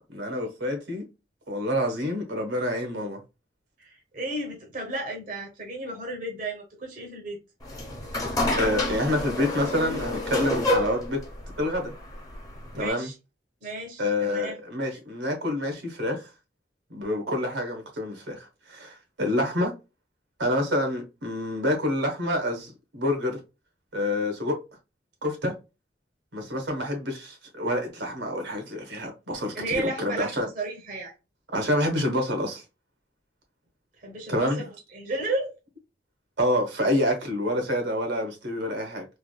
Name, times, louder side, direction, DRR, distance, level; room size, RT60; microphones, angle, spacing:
voice 1, 0.1-1.0 1.5-3.2 8.1-11.2 11.6-11.9 12.7-13.1 14.0-16.3 16.9-19.7 20.4-23.4 23.9-24.6 25.2-25.5 26.3-30.5 31.5-32.6 34.3-34.7 36.4-39.0, left 1 dB, 85° right, 1.2 m, -27 dB
voice 2, 3.8-7.4 12.7-13.1 13.6-14.6 29.5-31.1 34.0-35.5, right 2 dB, 50° right, 0.9 m, -33 dB
sound 1, 7.6-12.9, left 1 dB, 20° left, 1.1 m, -29 dB
3.5 x 2.5 x 2.3 m
head